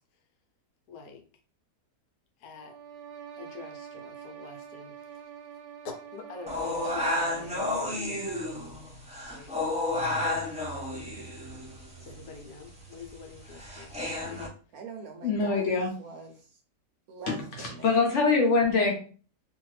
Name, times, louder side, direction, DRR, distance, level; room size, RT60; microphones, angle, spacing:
voice 1, 0.9-1.2 2.4-2.7 3.3-5.2 5.8-8.6 9.3-9.5 10.0-10.5 12.0-14.5, left 5 dB, 75° left, 4 dB, 1.2 m, -46 dB
sound 1, 2.5-7.9, right 8 dB, 90° right, 1.2 m, -46 dB
sound 2, 6.5-14.5, left 1 dB, 5° right, 0.5 m, -32 dB
voice 2, 14.7-16.6 17.1-17.9, right 5 dB, 70° right, 2 dB, 1.0 m, -44 dB
voice 3, 15.2-15.9 17.6-18.9, left 4 dB, 55° left, 0 dB, 1.0 m, -24 dB
2.7 x 2.5 x 3.1 m, 0.39 s
omnidirectional pair, 1.7 m